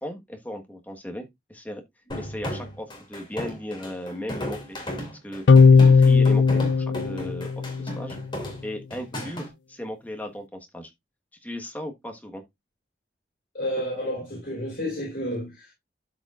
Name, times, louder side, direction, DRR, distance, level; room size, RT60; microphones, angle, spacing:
voice 1, 0.0-1.8 2.1-4.8 5.1-5.4 5.7-8.2 8.6-10.9 11.4-12.4, left 1 dB, 10° left, 1.4 m, -36 dB
sound 1, 2.1-9.5, equal, 25° left, 2.6 m, -35 dB
sound 2, 5.5-8.1, left 5 dB, 90° left, 0.5 m, -17 dB
voice 2, 13.5-15.7, equal, 55° left, 3.7 m, -31 dB
12.5 x 5.0 x 2.5 m
head